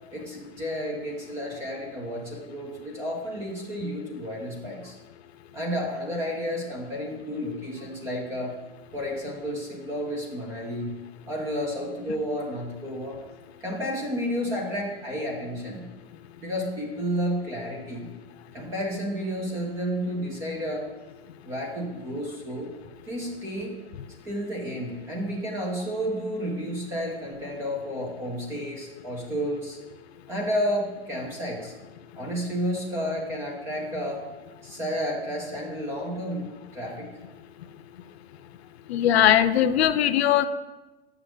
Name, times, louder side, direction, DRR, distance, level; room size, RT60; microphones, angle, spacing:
voice 1, 0.1-5.0 5.5-8.6 8.9-11.0 11.3-13.2 13.6-15.9 16.4-18.1 18.5-20.9 21.4-22.7 23.1-23.8 24.2-29.8 30.3-31.7 32.2-34.3 34.6-37.1, equal, 10° right, 0 dB, 0.4 m, -31 dB
voice 2, 38.9-40.5, left 11 dB, 85° left, 12 dB, 0.5 m, -20 dB
7.1 x 6.0 x 3.3 m, 1.2 s
supercardioid pair, 165°, 31 cm